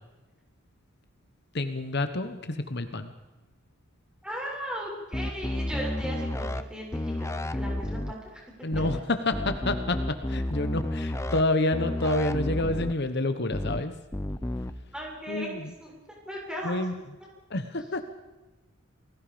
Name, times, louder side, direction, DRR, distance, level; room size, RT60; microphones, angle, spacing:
voice 1, 1.5-3.1 8.6-13.9 15.3-15.6 16.6-16.9 17.5-18.0, left 2 dB, 55° left, 9 dB, 1.3 m, -28 dB
voice 2, 4.2-8.4 8.7-8.8 14.9-15.5 15.8-16.7, equal, 5° right, -2 dB, 7.4 m, -37 dB
sound 1, 5.1-6.6 6.9-8.1 8.7-9.0 9.3-11.4 11.7-12.9 13.5-13.8 14.1-14.7, left 1 dB, 15° left, 0.9 m, -31 dB
29.0 x 21.0 x 5.2 m, 1.2 s
head